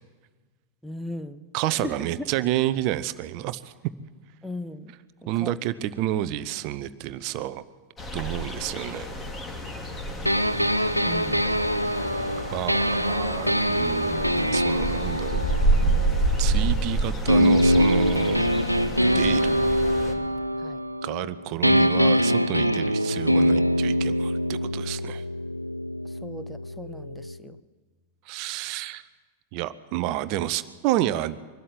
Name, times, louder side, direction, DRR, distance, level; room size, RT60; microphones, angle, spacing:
voice 1, 0.8-1.4 1.7-2.0 4.4-4.9 5.2-5.5 11.0-11.5 20.6-20.8 26.0-27.6, left 1 dB, ahead, 12 dB, 0.9 m, -38 dB
voice 2, 1.5-3.7 5.3-7.6 8.1-9.1 12.5-15.4 16.4-18.5 19.0-19.6 21.0-25.2 28.3-29.0 29.5-31.4, right 13 dB, 45° right, 14 dB, 0.7 m, -29 dB
sound 1, 8.0-20.1, right 2 dB, 20° left, 2.8 m, -28 dB
sound 2, 10.3-16.8 17.3-21.3 21.6-27.4, equal, 90° right, 0.6 m, -24 dB
23.5 x 12.5 x 8.7 m, 1.4 s
figure-of-eight pair, 90°, 0 cm